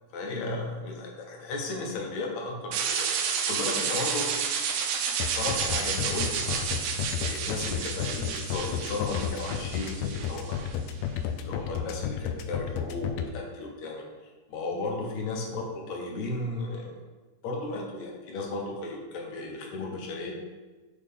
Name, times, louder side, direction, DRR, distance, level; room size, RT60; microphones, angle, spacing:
voice 1, 0.1-4.3 5.2-10.7 11.4-16.9 17.4-20.3, left 2 dB, 70° left, 0 dB, 2.2 m, -35 dB
sound 1, 2.7-10.7, right 6 dB, 80° right, 2.1 m, -31 dB
sound 2, 5.2-13.2, left 9 dB, 85° left, 1.4 m, -31 dB
6.7 x 5.1 x 3.6 m, 1.3 s
omnidirectional pair, 3.5 m